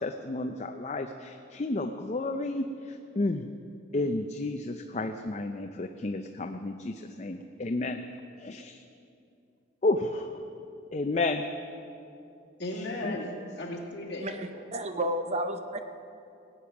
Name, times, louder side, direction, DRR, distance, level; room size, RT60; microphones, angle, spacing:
voice 1, 0.0-3.5 3.9-8.0 8.4-8.8 9.8-10.4 10.9-11.5 12.7-13.2, left 2 dB, 35° left, 6 dB, 0.5 m, -32 dB
voice 2, 12.6-14.3, left 1 dB, 60° left, -2 dB, 2.3 m, -35 dB
voice 3, 14.2-15.8, right 1 dB, 35° right, 7 dB, 0.7 m, -32 dB
19.0 x 8.7 x 6.0 m, 2.7 s
head